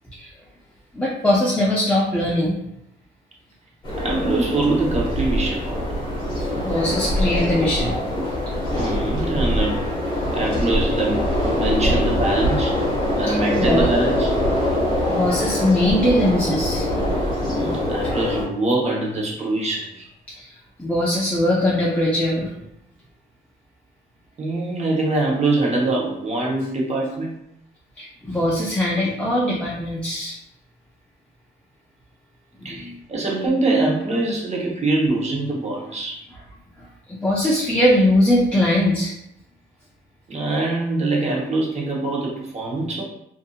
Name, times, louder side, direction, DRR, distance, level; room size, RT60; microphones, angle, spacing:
voice 1, 0.9-2.6 6.4-8.3 13.2-13.8 15.1-16.9 20.4-20.5 20.8-22.6 28.0-30.4 32.6-33.0 36.8-39.1, left 1 dB, 5° left, -6 dB, 0.5 m, -21 dB
sound 1, 3.8-18.4, left 1 dB, 20° left, 1.1 m, -23 dB
voice 2, 4.0-5.9 8.7-9.8 10.3-12.8 13.2-14.4 17.4-20.1 24.4-27.4 32.6-36.2 40.3-43.1, right 2 dB, 35° right, -3 dB, 0.9 m, -24 dB
2.6 x 2.6 x 2.3 m, 0.78 s
cardioid pair, 90°, 20 cm